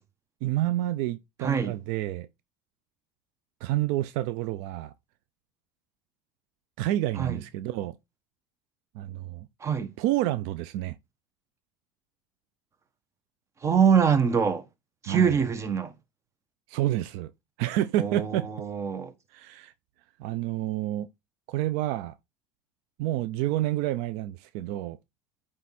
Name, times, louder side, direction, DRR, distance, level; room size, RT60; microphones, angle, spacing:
voice 1, 0.4-2.3 3.6-4.9 6.8-8.0 8.9-9.5 10.0-11.0 15.0-15.4 16.7-17.3 17.6-18.5 19.3-19.7 20.2-21.1 21.5-22.1 23.0-25.0, right 14 dB, 80° right, 0.5 m, -29 dB
voice 2, 1.4-1.8 7.2-7.4 9.6-9.9 13.6-14.6 15.0-15.9 18.0-19.1, right 7 dB, 30° right, 1.3 m, -24 dB
9.4 x 3.7 x 4.2 m
supercardioid pair, 105°, 10 cm